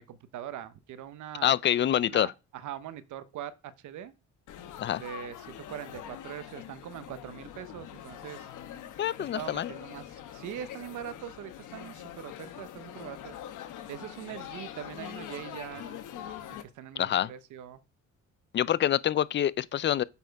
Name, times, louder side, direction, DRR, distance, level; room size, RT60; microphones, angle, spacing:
voice 1, 0.0-1.5 2.0-4.1 5.0-8.5 9.2-13.3 13.9-16.0 16.5-17.8, right 10 dB, 75° right, 0.8 m, -42 dB
voice 2, 1.4-2.3 4.8-5.0 9.0-9.7 17.0-17.3 18.5-20.0, left 11 dB, 40° left, 0.4 m, -26 dB
Laughter / Chatter / Crowd, 4.5-16.6, left 10 dB, 85° left, 1.1 m, -44 dB
8.2 x 4.3 x 4.6 m
cardioid pair, 90°, 30 cm